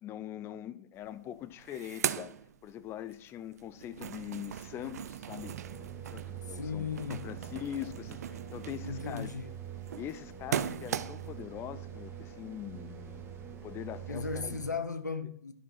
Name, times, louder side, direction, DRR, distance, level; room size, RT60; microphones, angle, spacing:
voice 1, 0.0-2.3 2.6-5.6 6.1-9.3 10.0-13.2 13.6-14.6, left 11 dB, 25° left, 0.5 m, -42 dB
sound 1, 1.0-1.1 1.4-3.2 3.5-11.4, right 9 dB, 65° right, 0.6 m, -39 dB
sound 2, 5.4-14.7, right 9 dB, 25° right, 1.8 m, -45 dB
voice 2, 6.5-7.3 8.8-9.5 14.1-15.5, left 5 dB, 85° left, 0.9 m, -36 dB
11.0 x 7.2 x 4.3 m
figure-of-eight pair, 100°, 9 cm